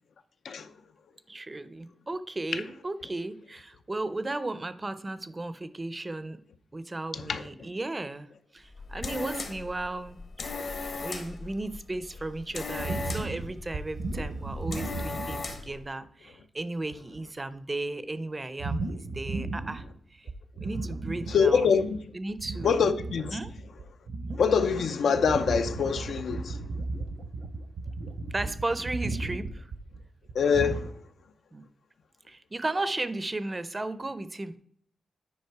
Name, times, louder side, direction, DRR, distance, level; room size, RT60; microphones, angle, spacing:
voice 1, 1.3-6.4 6.7-10.2 11.0-19.8 20.1-20.3 20.6-21.7 22.1-22.8 23.3-23.5 28.3-29.7 31.5-31.6 32.3-34.6, right 2 dB, 20° right, 0.5 m, -35 dB
sound 1, 8.6-15.8, left 3 dB, 55° left, 1.1 m, -38 dB
sound 2, 12.8-15.8 16.3-16.4 16.8-17.2 18.6-20.0 20.3-22.0 22.3-30.9, right 3 dB, 70° right, 1.0 m, -35 dB
voice 2, 21.3-22.0 22.6-23.4 24.4-26.6 30.3-30.8, left 6 dB, 80° left, 0.6 m, -24 dB
9.5 x 5.2 x 4.6 m
wide cardioid pair, 145°, 0 cm